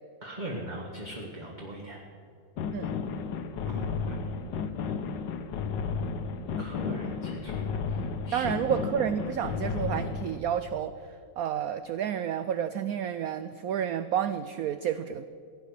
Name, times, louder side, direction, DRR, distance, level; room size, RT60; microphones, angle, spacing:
voice 1, 0.2-2.0 3.6-4.2 6.6-8.0 8.3-8.7, equal, 25° right, -2 dB, 1.6 m, -39 dB
sound 1, 2.6-10.4, left 5 dB, 75° left, 1.4 m, -33 dB
voice 2, 8.3-11.0 11.4-15.2, right 9 dB, 85° right, 12 dB, 0.7 m, -30 dB
17.0 x 9.6 x 6.5 m, 2.4 s
omnidirectional pair, 2.1 m